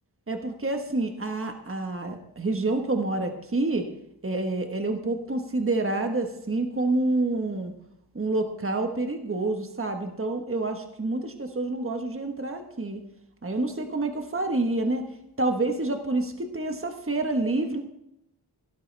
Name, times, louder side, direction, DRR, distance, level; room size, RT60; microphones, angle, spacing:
voice 1, 0.3-3.9 4.2-7.7 8.1-13.0 13.4-15.1 15.4-17.8, right 2 dB, 35° right, 4 dB, 1.3 m, -28 dB
17.0 x 12.5 x 3.4 m, 0.79 s
wide cardioid pair, 85°, 40 cm